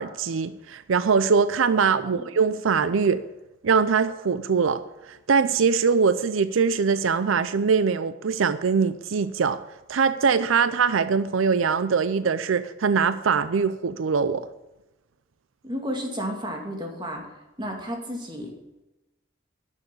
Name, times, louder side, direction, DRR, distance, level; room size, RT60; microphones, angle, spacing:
voice 1, 0.0-3.2 3.6-4.8 5.1-9.6 9.9-14.5, right 5 dB, 90° right, 13 dB, 0.5 m, -22 dB
voice 2, 15.6-17.2 17.6-18.5, equal, 25° right, 1 dB, 2.3 m, -32 dB
10.5 x 7.1 x 8.4 m, 0.99 s
head